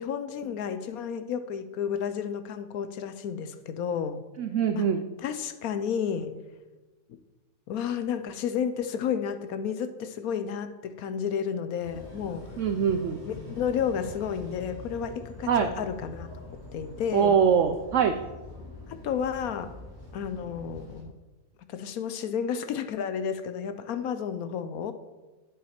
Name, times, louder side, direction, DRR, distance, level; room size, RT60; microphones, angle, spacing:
voice 1, 0.0-4.2 4.7-4.9 5.2-6.4 7.7-12.6 13.3-16.3 16.7-17.4 18.9-19.7 20.1-21.1 21.7-24.9, left 7 dB, 70° left, 10 dB, 1.0 m, -31 dB
voice 2, 4.4-5.1 12.6-13.2 15.5-15.7 17.1-18.2, right 7 dB, 65° right, 8 dB, 0.7 m, -23 dB
sound 1, 11.8-21.0, left 2 dB, 15° left, 3.6 m, -44 dB
10.5 x 8.2 x 4.3 m, 1.2 s
omnidirectional pair, 1.8 m